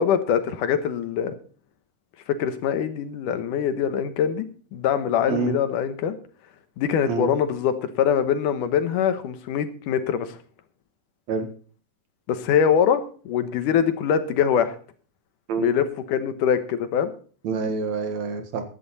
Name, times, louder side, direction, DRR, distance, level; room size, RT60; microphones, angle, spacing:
voice 1, 0.0-1.4 2.4-4.5 4.7-6.2 6.8-10.4 12.3-14.7 15.6-17.1, left 8 dB, 90° left, 10 dB, 2.8 m, -23 dB
voice 2, 17.4-18.6, right 4 dB, 65° right, 7 dB, 2.8 m, -27 dB
15.5 x 11.0 x 4.2 m, 0.41 s
omnidirectional pair, 3.6 m